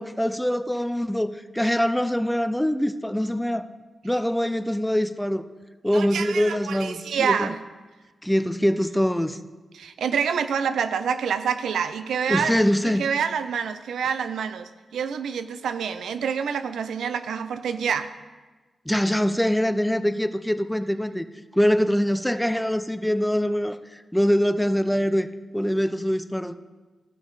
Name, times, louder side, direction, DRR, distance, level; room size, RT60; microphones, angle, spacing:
voice 1, 0.0-3.7 4.0-5.4 5.8-7.5 8.2-9.4 12.3-13.1 18.9-21.3 21.5-25.3 25.5-26.5, equal, 5° left, 11 dB, 0.5 m, -23 dB
voice 2, 5.9-7.6 9.7-12.5 12.8-18.1, right 7 dB, 85° right, 11 dB, 0.4 m, -27 dB
14.5 x 5.9 x 4.0 m, 1.3 s
cardioid pair, 55°, 0 cm